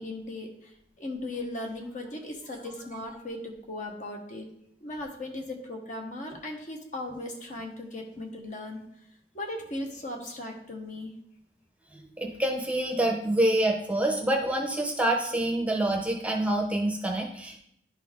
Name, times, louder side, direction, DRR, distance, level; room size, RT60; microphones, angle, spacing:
voice 1, 0.0-4.5 4.8-8.8 9.3-11.1, left 1 dB, 45° left, 2 dB, 1.1 m, -37 dB
voice 2, 11.9-17.6, right 1 dB, 10° right, 1 dB, 0.7 m, -27 dB
10.5 x 4.1 x 3.6 m, 0.73 s
head